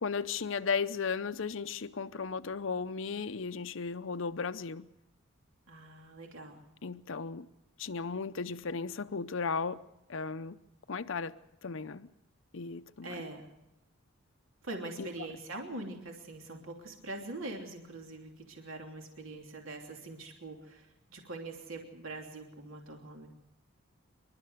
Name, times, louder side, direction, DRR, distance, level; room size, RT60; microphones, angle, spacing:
voice 1, 0.0-4.9 6.8-7.5 7.8-9.8 10.1-10.6 10.9-11.3 11.6-12.1 12.5-13.2 15.0-15.1, left 5 dB, 60° left, 0.6 m, -35 dB
voice 2, 5.7-6.6 13.0-13.5 14.6-23.3, right 2 dB, 65° right, 3.0 m, -43 dB
27.0 x 12.5 x 8.0 m
head